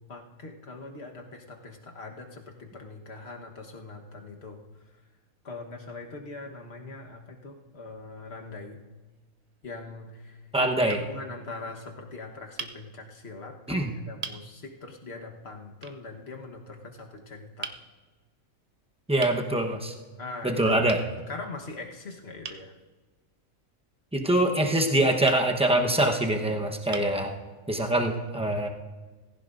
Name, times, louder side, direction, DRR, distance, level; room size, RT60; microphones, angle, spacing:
voice 1, 0.1-4.6 5.4-8.8 9.6-10.7 11.0-17.7 20.2-20.8 21.3-22.7, left 3 dB, 45° left, 2 dB, 1.5 m, -41 dB
sound 1, 9.1-9.7 10.4-10.6 10.9-11.1 12.6-12.8 13.6-13.7 14.2-14.4 15.8-16.0 17.6-17.8 19.2-19.4 20.9-21.1 22.4-22.6 25.2-25.4 26.3-26.4 26.9-27.2, right 5 dB, 55° right, 0.4 m, -38 dB
voice 2, 10.5-11.0 13.7-13.9 19.1-19.9 20.4-21.0 24.1-27.3 27.7-28.7, right 1 dB, 5° right, 2 dB, 0.9 m, -24 dB
18.5 x 16.0 x 2.6 m, 1.3 s
omnidirectional pair, 1.5 m